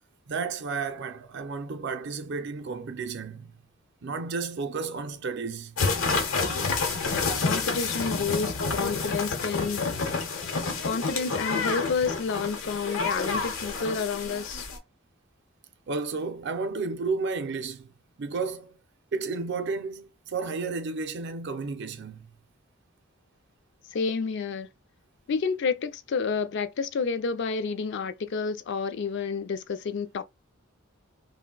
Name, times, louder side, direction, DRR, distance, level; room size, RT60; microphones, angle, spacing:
voice 1, 0.3-3.6 4.0-5.7 15.9-17.9 18.2-18.8 19.1-22.3, right 4 dB, 55° right, 0.5 m, -32 dB
sound 1, 5.8-14.8, left 4 dB, 85° left, 0.9 m, -29 dB
voice 2, 7.4-10.0 10.8-14.7 23.9-24.7 25.3-30.2, left 5 dB, 60° left, 0.4 m, -30 dB
2.4 x 2.1 x 3.7 m
head